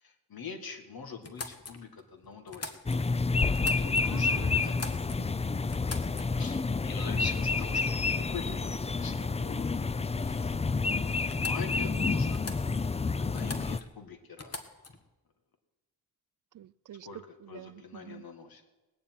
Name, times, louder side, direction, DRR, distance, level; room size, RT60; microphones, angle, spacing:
voice 1, 0.0-2.7 3.7-4.8 6.4-10.6 11.3-12.4 13.2-14.6 17.1-17.2 17.5-18.6, left 5 dB, 70° left, 5 dB, 2.1 m, -44 dB
sound 1, 1.2-3.2 3.5-4.2 4.6-5.4 5.7-6.5 7.5-7.7 8.1-8.5 10.4-10.5 10.8-10.9 11.3-11.9 12.3-13.0 13.4-14.0 14.4-15.1, left 3 dB, 40° left, 1.6 m, -44 dB
sound 2, 2.9-13.8, left 4 dB, 15° left, 0.4 m, -29 dB
voice 2, 4.0-5.3 16.5-18.2, right 11 dB, 55° right, 20 dB, 0.5 m, -47 dB
19.0 x 7.1 x 9.3 m, 1.1 s
wide cardioid pair, 95°, 37 cm